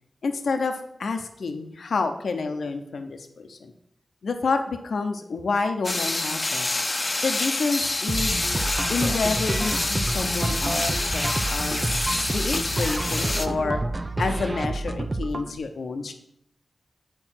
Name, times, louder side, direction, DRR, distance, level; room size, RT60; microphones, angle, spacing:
voice 1, 0.2-3.7 4.2-6.7 7.2-8.4 8.9-11.9 12.3-13.8 14.2-16.1, left 4 dB, 80° left, 6 dB, 0.6 m, -28 dB
sound 1, 5.8-13.5, left 2 dB, 40° left, 0.6 m, -27 dB
sound 2, 8.1-15.5, right 2 dB, 35° right, 0.5 m, -29 dB
7.8 x 4.5 x 5.8 m, 0.75 s
cardioid pair, 50°, 0 cm